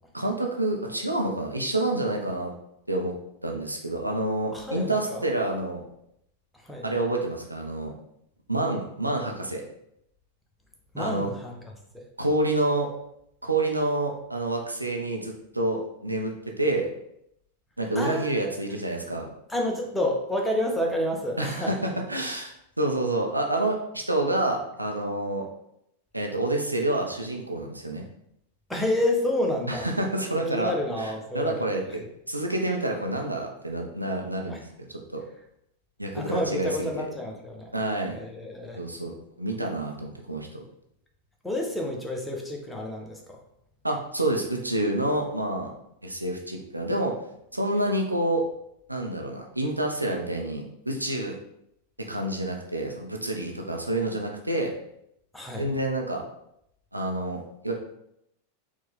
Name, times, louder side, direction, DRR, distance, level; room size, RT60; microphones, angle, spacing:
voice 1, 0.1-2.5 2.9-3.1 3.4-5.8 6.8-7.9 8.5-9.6 11.0-11.3 12.2-12.9 13.4-16.9 17.8-19.3 21.4-25.4 26.1-28.0 29.7-32.0 32.3-34.6 35.1-35.2 36.0-36.9 37.7-38.2 38.8-40.6 43.8-45.7 46.0-47.1 47.5-48.4 48.9-51.3 52.1-54.7 55.6-56.2 56.9-57.7, right 1 dB, 85° right, 1 dB, 0.6 m, -28 dB
voice 2, 4.5-5.3 6.6-6.9 10.9-11.5 11.9-12.1 17.9-18.6 19.5-21.7 28.7-29.9 30.5-31.8 34.5-34.6 36.1-37.7 38.1-38.8 41.4-43.4 55.3-55.7, left 1 dB, 5° left, 0 dB, 0.8 m, -29 dB
4.4 x 2.4 x 3.4 m, 0.77 s
figure-of-eight pair, 90°, 0 cm